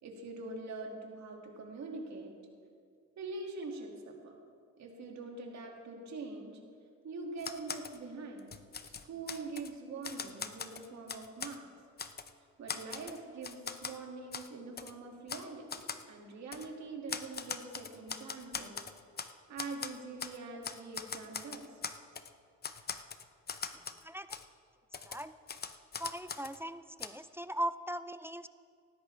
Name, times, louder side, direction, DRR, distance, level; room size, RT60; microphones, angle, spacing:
voice 1, 0.0-2.3 3.2-4.4 4.8-6.6 7.0-8.6 8.8-11.7 12.6-18.8 19.5-21.6, right 3 dB, 65° right, 1 dB, 2.3 m, -44 dB
Typewriter, 7.4-8.0 8.4-9.7 10.0-11.6 12.0-12.3 12.7-14.0 14.3-14.5 14.8-14.9 15.3-15.4 15.7-16.0 16.5-16.7 17.1-19.3 19.6-20.4 20.6-22.3 22.6-24.0 24.3-24.4 24.9-26.6 27.0-27.1, left 6 dB, 30° left, 0.7 m, -41 dB
voice 2, 24.0-24.4 25.1-25.3 26.0-28.5, right 1 dB, 10° right, 12 dB, 0.4 m, -39 dB
18.5 x 13.5 x 3.3 m, 2.2 s
cardioid pair, 90°, 30 cm